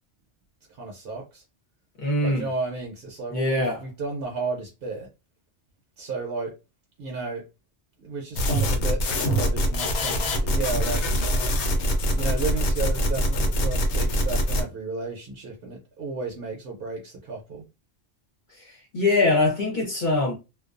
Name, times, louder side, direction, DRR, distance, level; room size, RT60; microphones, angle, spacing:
voice 1, 0.7-1.4 2.2-5.1 6.0-6.6 7.0-7.5 8.0-11.0 12.1-17.6, right 3 dB, 60° right, 0.8 m, -33 dB
voice 2, 2.0-2.5 3.3-3.8 18.5-20.3, left 2 dB, 50° left, 0.8 m, -23 dB
sound 1, 8.4-14.6, equal, 85° left, 0.9 m, -24 dB
2.3 x 2.2 x 2.4 m
omnidirectional pair, 1.1 m